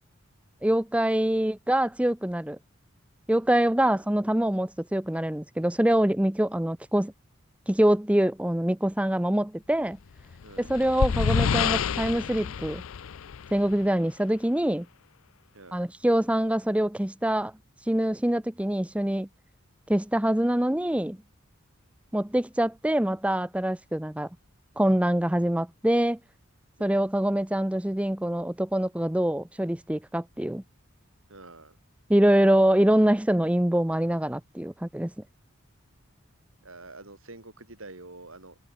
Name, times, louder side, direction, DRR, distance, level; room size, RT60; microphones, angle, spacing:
voice 1, 0.6-2.6 3.3-7.1 7.7-10.0 10.6-12.8 13.5-14.9 15.7-17.5 17.9-19.3 19.9-21.2 22.1-24.3 24.8-26.2 26.8-30.6 32.1-35.1, right 1 dB, 5° right, 0.5 m, -24 dB
sound 1, 10.2-13.8, left 6 dB, 80° left, 0.5 m, -28 dB
voice 2, 10.4-10.7 15.5-15.8 26.8-27.0 31.3-31.8 36.6-38.6, right 2 dB, 80° right, 5.0 m, -47 dB
head